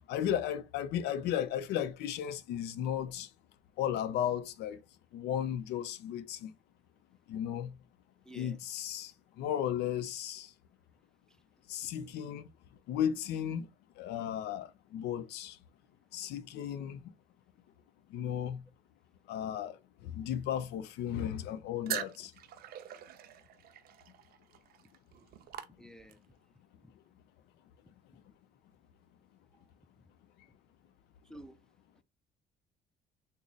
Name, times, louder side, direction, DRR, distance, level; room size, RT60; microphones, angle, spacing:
voice 1, 0.1-3.3 3.8-4.8 5.1-6.5 7.3-7.8 8.3-9.1 9.4-10.5 11.7-12.5 12.9-13.7 14.0-15.6 16.1-17.0 18.1-18.6 19.3-19.8 20.0-22.3, left 10 dB, 80° left, 0.5 m, -35 dB
voice 2, 8.2-8.6 11.3-11.4 25.8-26.2 26.8-26.9 29.5-29.7 31.2-31.6, right 1 dB, 5° left, 0.3 m, -52 dB
sound 1, 21.9-26.3, right 11 dB, 65° right, 0.5 m, -43 dB
3.7 x 2.0 x 3.9 m
cardioid pair, 110°, 17 cm